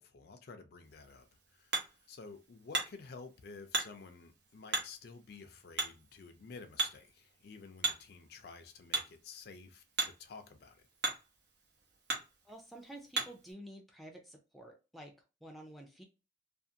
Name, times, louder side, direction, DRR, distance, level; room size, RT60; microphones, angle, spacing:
voice 1, 0.0-10.9, left 4 dB, 55° left, 0.4 m, -52 dB
Hammer, 0.8-13.5, right 3 dB, 65° right, 0.8 m, -40 dB
voice 2, 12.4-15.1 15.4-16.0, right 1 dB, ahead, 0.4 m, -50 dB
2.5 x 2.4 x 2.7 m
head